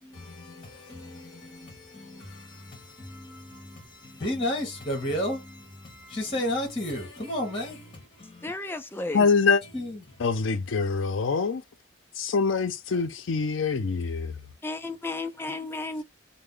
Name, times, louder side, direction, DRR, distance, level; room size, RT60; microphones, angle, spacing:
voice 1, 0.0-8.5 9.6-10.3 12.9-13.0 15.9-16.0, left 1 dB, 25° left, 1.2 m, -34 dB
voice 2, 8.4-9.3 14.6-16.0, left 2 dB, 10° left, 0.3 m, -33 dB
voice 3, 9.1-9.6 10.2-11.6 12.2-14.4, left 5 dB, 70° left, 0.5 m, -24 dB
3.3 x 2.1 x 3.7 m
head